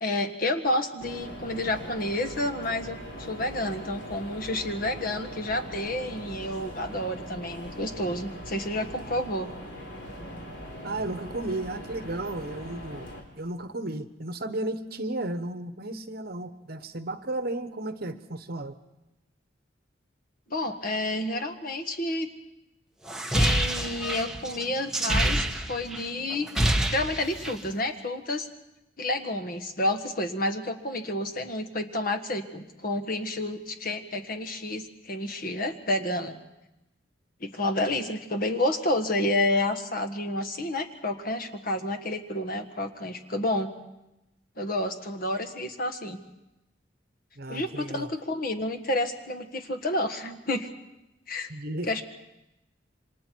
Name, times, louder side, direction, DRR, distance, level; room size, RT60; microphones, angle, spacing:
voice 1, 0.0-9.5 20.5-22.3 23.3-26.5 26.9-28.5 29.0-36.4 37.4-43.7 44.6-46.2 47.5-50.7 51.3-51.5 51.9-52.0, left 1 dB, 50° left, 7 dB, 1.6 m, -30 dB
sound 1, 1.0-13.2, equal, 65° left, 4.1 m, -41 dB
voice 2, 10.8-13.1 13.4-18.7 47.4-48.1 51.5-51.9, right 2 dB, 55° right, 10 dB, 1.2 m, -34 dB
sound 2, 23.1-26.0 26.3-27.7, right 1 dB, 5° right, 1.1 m, -26 dB
28.0 x 25.0 x 4.6 m, 0.94 s
head